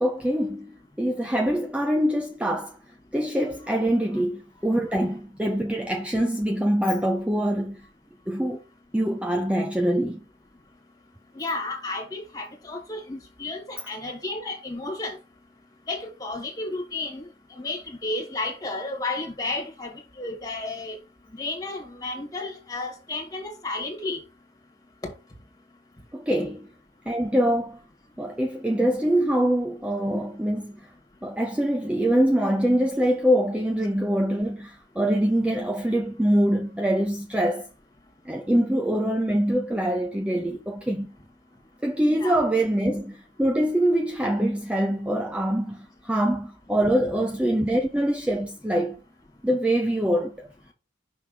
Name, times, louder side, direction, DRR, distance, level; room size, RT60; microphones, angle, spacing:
voice 1, 0.0-2.8 3.1-7.8 8.3-8.6 8.9-10.2 26.1-26.7 27.1-27.8 28.2-30.9 31.2-37.7 38.2-41.1 41.8-49.0 49.4-50.5, right 1 dB, 5° right, 0.4 m, -24 dB
voice 2, 11.3-15.2 15.9-17.2 17.6-21.0 21.3-24.2 42.1-42.5, left 2 dB, 20° left, 1.9 m, -32 dB
5.9 x 3.5 x 5.7 m
head